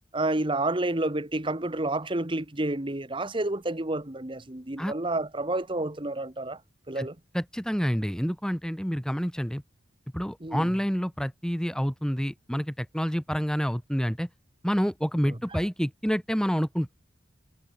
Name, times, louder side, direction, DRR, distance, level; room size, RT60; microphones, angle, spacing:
voice 1, 0.1-6.6 6.9-7.1 10.4-10.7 15.5-15.6, right 2 dB, 25° right, 1.5 m, -29 dB
voice 2, 7.3-9.6 10.1-14.3 14.6-16.9, equal, 5° left, 3.2 m, -28 dB
head